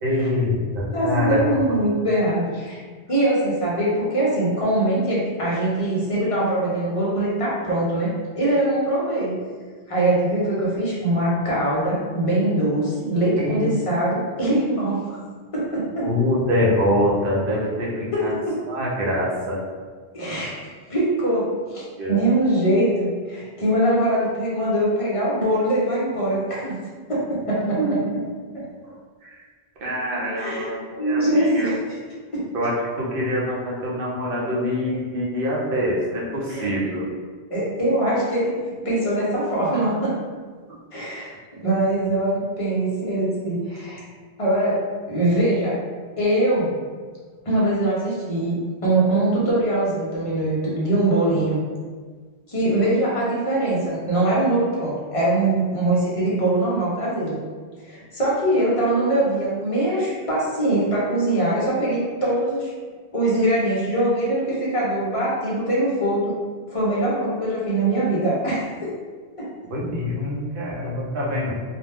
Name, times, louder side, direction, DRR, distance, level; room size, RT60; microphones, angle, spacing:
voice 1, 0.0-1.6 13.4-13.7 16.0-18.4 18.7-19.6 22.0-22.2 27.8-27.9 29.8-31.7 32.5-37.1 69.7-71.6, left 1 dB, 60° right, -4 dB, 0.8 m, -24 dB
voice 2, 0.9-2.8 3.1-8.1 8.4-9.4 9.9-15.2 15.5-16.1 18.1-18.6 20.1-20.6 20.9-26.7 27.1-28.0 30.4-31.8 32.3-32.5 36.5-36.8 37.5-38.6 38.8-40.2 40.9-44.0 44.4-44.8 45.1-45.8 46.2-46.7 47.4-51.6 52.5-57.4 57.9-62.7 63.1-66.3 66.7-68.9 69.4-69.5, right 1 dB, 35° left, -6 dB, 0.7 m, -22 dB
2.4 x 2.1 x 3.3 m, 1.5 s
omnidirectional pair, 1.1 m